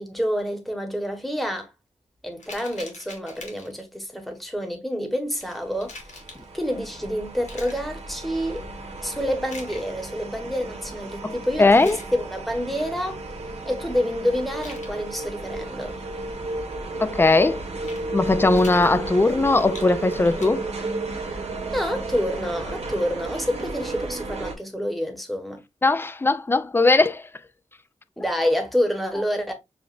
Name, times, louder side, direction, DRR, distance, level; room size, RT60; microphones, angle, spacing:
voice 1, 0.0-1.7 2.2-5.9 6.5-8.7 9.0-13.2 13.7-16.0 21.7-25.6 28.2-29.5, equal, ahead, 1.1 m, -28 dB
sound 1, 2.4-3.8 5.4-6.4 7.5-7.9 9.4-9.9 11.6-12.1 14.5-14.9 17.7-18.0 18.5-20.5, left 3 dB, 85° left, 1.4 m, -43 dB
sound 2, 5.6-24.5, right 2 dB, 65° right, 1.2 m, -33 dB
voice 2, 11.2-12.0 17.0-17.7 18.1-20.6 25.8-27.2, left 3 dB, 20° left, 0.4 m, -19 dB
7.0 x 2.5 x 2.4 m
wide cardioid pair, 120°, 12 cm